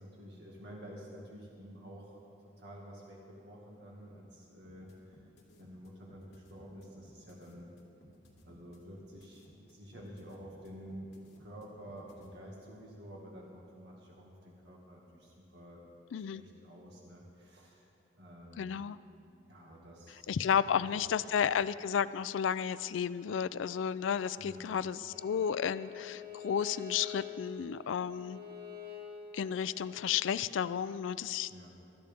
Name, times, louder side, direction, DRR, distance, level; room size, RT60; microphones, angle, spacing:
voice 1, 0.0-2.2 2.6-5.3 5.6-7.7 8.4-15.8 16.2-17.9 18.2-18.8 19.5-21.0 21.4-21.5 24.4-24.7 31.5-31.7, equal, 60° right, -3 dB, 2.0 m, -50 dB
sound 1, 4.6-12.3, equal, 60° left, 2.7 m, -60 dB
voice 2, 18.6-19.0 20.3-28.4 29.3-31.5, left 8 dB, 85° left, 15 dB, 0.4 m, -32 dB
Bowed string instrument, 25.1-30.1, left 7 dB, 25° right, 1.5 m, -46 dB
23.5 x 13.0 x 3.6 m, 2.7 s
head